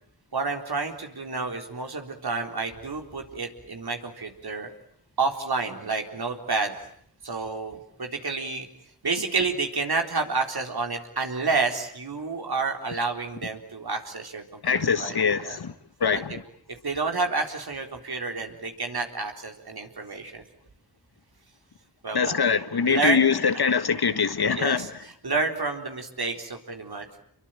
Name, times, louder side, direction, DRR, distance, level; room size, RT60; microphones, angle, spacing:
voice 1, 0.3-4.7 5.2-6.8 7.2-8.7 9.0-15.1 15.4-15.6 16.1-16.2 16.8-20.4 22.0-22.4 22.9-23.2 24.6-24.9 25.2-27.2, right 4 dB, 65° right, 4.0 m, -29 dB
voice 2, 14.6-15.7 16.0-16.4 22.1-24.9, left 6 dB, 70° left, 1.7 m, -23 dB
28.0 x 23.0 x 9.2 m
cardioid pair, 40°, 40 cm